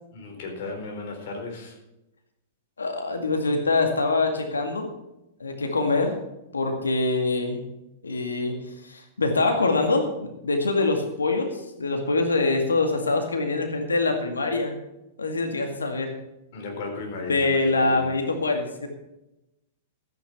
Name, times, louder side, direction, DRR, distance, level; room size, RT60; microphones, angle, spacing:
voice 1, 0.1-1.7 16.5-18.1, left 3 dB, 55° left, 2 dB, 4.2 m, -35 dB
voice 2, 2.8-4.9 5.4-6.2 6.5-7.6 8.0-8.6 8.8-10.1 10.4-14.7 15.2-16.1 17.3-18.9, left 3 dB, 80° left, 4 dB, 2.1 m, -24 dB
13.0 x 9.8 x 5.7 m, 0.92 s
figure-of-eight pair, 105°, 0 cm